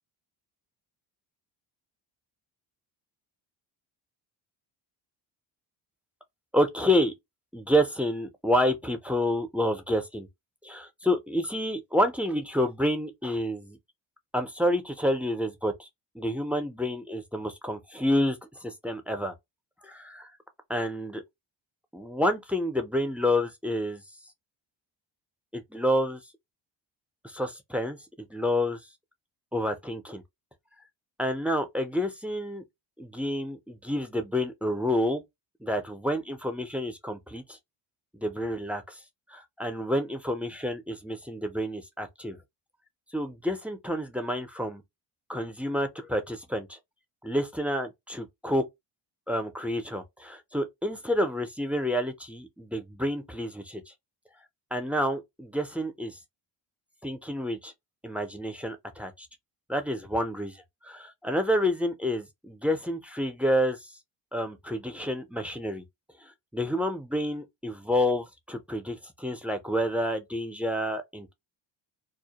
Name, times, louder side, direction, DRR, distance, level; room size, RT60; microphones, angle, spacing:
voice 1, 6.5-7.1 7.5-10.3 10.6-13.8 14.3-15.9 16.1-19.3 19.8-20.3 20.7-21.2 21.9-24.0 25.5-26.2 27.2-28.8 29.5-30.2 31.2-32.6 33.0-35.2 35.6-37.6 38.1-39.0 39.3-42.4 43.1-44.8 45.3-46.8 47.2-48.6 49.3-53.8 54.7-56.2 57.0-57.7 58.0-59.3 59.7-63.9 64.3-65.8 66.2-71.3, equal, 5° right, 0.3 m, -29 dB
2.2 x 2.0 x 2.7 m
cardioid pair, 100°, 47 cm